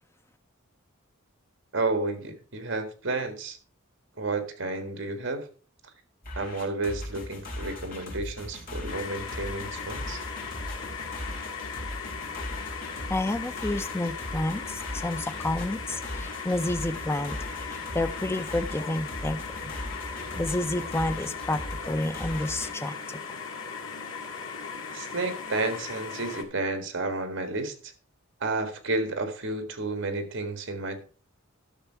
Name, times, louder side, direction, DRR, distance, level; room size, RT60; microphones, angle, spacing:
voice 1, 1.7-3.6 4.2-5.5 6.4-10.2 24.9-27.9 28.4-31.0, right 2 dB, 65° right, 7 dB, 1.8 m, -31 dB
sound 1, 6.2-22.7, left 1 dB, 45° left, 3.2 m, -39 dB
sound 2, 8.9-26.4, left 5 dB, 80° left, 1.7 m, -38 dB
voice 2, 13.1-17.4 17.7-23.2, left 1 dB, 10° left, 9 dB, 0.5 m, -30 dB
12.0 x 6.5 x 4.5 m, 0.39 s
head